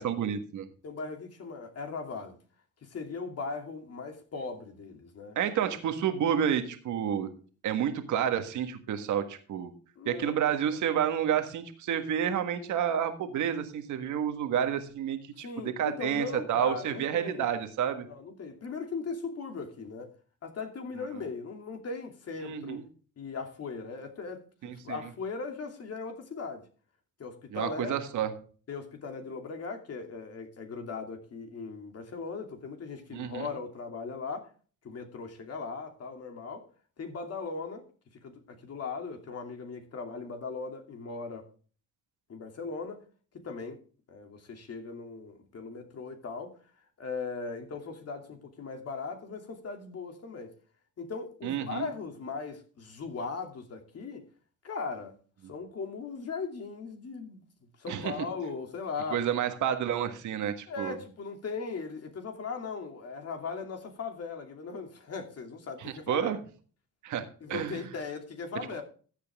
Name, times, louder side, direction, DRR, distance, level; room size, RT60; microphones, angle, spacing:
voice 1, 0.0-0.7 5.3-7.3 7.6-9.7 10.0-18.0 22.4-22.8 24.9-25.0 27.5-28.3 33.1-33.5 51.4-51.9 57.9-58.2 59.1-61.0 65.8-66.4 67.0-67.8, right 9 dB, 80° right, 1.6 m, -30 dB
voice 2, 0.8-2.4 2.8-5.4 10.0-10.4 15.4-17.5 18.1-20.1 20.4-22.8 23.2-26.7 27.2-27.9 28.7-34.5 34.8-36.7 37.0-37.8 38.2-41.5 42.3-43.0 43.3-43.8 44.1-46.6 47.0-50.5 51.0-54.3 54.6-55.2 55.5-57.4 57.8-59.2 60.7-66.3 67.4-68.8, left 4 dB, 55° left, 2.7 m, -38 dB
14.5 x 8.2 x 3.6 m
cardioid pair, 90°, 30 cm